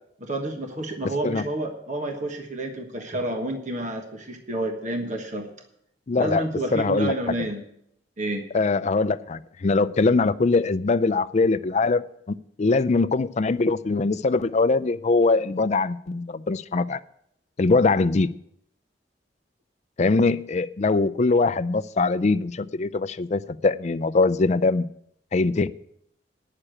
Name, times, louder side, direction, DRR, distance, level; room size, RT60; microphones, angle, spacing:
voice 1, 0.2-5.5 6.2-7.7 8.2-8.5, right 1 dB, 45° right, 3 dB, 1.3 m, -30 dB
voice 2, 6.1-6.4 6.7-7.1 8.5-12.0 12.3-17.0 17.6-18.3 20.0-24.9 25.3-25.7, left 3 dB, 40° left, 13 dB, 0.4 m, -22 dB
9.9 x 6.6 x 8.9 m, 0.73 s
head